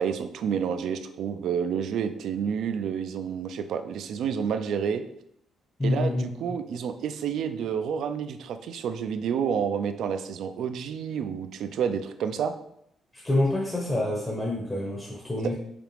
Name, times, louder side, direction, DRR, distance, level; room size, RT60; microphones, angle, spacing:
voice 1, 0.0-5.0 5.8-12.5, right 7 dB, 75° right, 9 dB, 0.3 m, -29 dB
voice 2, 5.8-6.6 13.1-15.5, left 2 dB, 20° left, -2 dB, 0.8 m, -27 dB
4.9 x 2.4 x 3.3 m, 0.75 s
cardioid pair, 90°, 0 cm